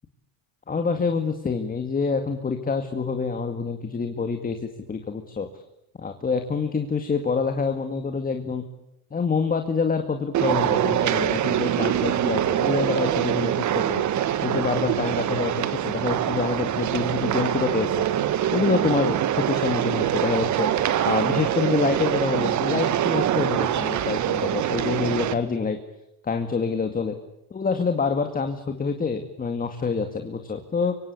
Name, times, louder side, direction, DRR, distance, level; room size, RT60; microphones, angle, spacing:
voice 1, 0.7-5.5 6.0-8.6 9.1-14.1 14.4-17.9 18.5-20.7 21.0-25.8 26.2-27.2 27.5-31.0, left 5 dB, 20° left, 7 dB, 2.2 m, -26 dB
sound 1, 10.3-25.3, right 11 dB, 40° right, 1.7 m, -24 dB
25.5 x 24.5 x 8.6 m, 0.80 s
supercardioid pair, 120°, 44 cm